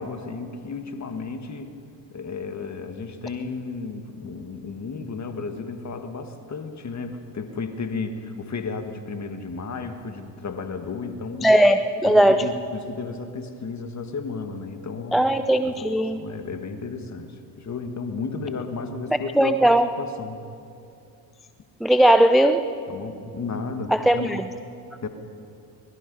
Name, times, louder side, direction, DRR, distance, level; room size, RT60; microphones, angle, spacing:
voice 1, 0.0-1.7 2.1-11.5 12.0-15.2 15.6-15.9 16.1-19.7 20.0-20.4 22.9-24.3 25.0-25.1, left 4 dB, 35° left, 7 dB, 1.6 m, -33 dB
voice 2, 11.4-12.5 15.1-16.2 19.4-19.9 21.8-22.7 23.9-24.4, right 1 dB, ahead, 9 dB, 0.4 m, -18 dB
20.5 x 13.0 x 5.4 m, 2.5 s
supercardioid pair, 70°, 48 cm